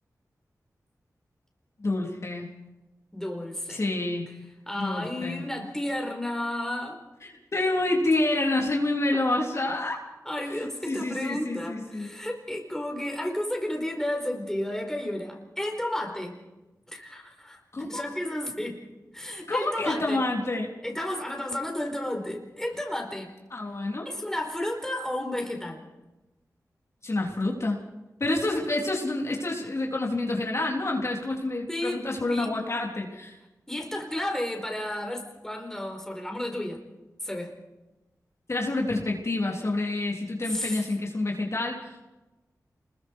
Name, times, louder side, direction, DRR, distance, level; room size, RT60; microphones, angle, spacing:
voice 1, 1.8-2.5 3.7-4.2 4.8-5.4 7.5-10.0 10.5-12.1 17.7-18.0 19.5-20.7 23.5-24.1 27.0-27.8 28.2-33.4 38.5-42.0, left 2 dB, 45° left, -1 dB, 3.8 m, -28 dB
voice 2, 3.1-3.8 4.7-7.0 10.2-16.4 16.9-18.9 19.1-20.2 20.8-23.3 24.0-25.8 31.7-32.6 33.7-36.8 37.2-37.5 40.4-40.9, left 1 dB, 5° left, 2 dB, 4.7 m, -32 dB
28.5 x 21.5 x 4.8 m, 1.1 s
wide cardioid pair, 65°, 6 cm